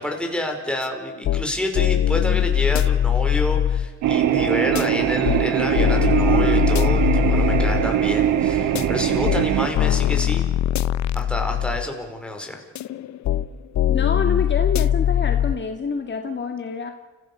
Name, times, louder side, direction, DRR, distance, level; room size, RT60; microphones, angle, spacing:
voice 1, 0.0-10.5 11.1-12.7, left 1 dB, 5° left, 2 dB, 5.0 m, -28 dB
sound 1, 0.8-0.9 1.2-1.5 1.7-3.9 4.7-4.8 5.2-5.5 5.7-7.9 8.7-8.8 9.2-9.5 9.7-11.9 12.7-13.5 13.7-15.5, left 11 dB, 70° left, 0.8 m, -21 dB
sound 2, 4.0-9.7, right 10 dB, 90° right, 1.7 m, -21 dB
sound 3, 5.7-10.4, right 3 dB, 45° right, 5.8 m, -42 dB
voice 2, 13.9-16.9, left 5 dB, 35° left, 5 dB, 2.0 m, -27 dB
29.5 x 16.0 x 6.8 m, 1.4 s
cardioid pair, 90°, 30 cm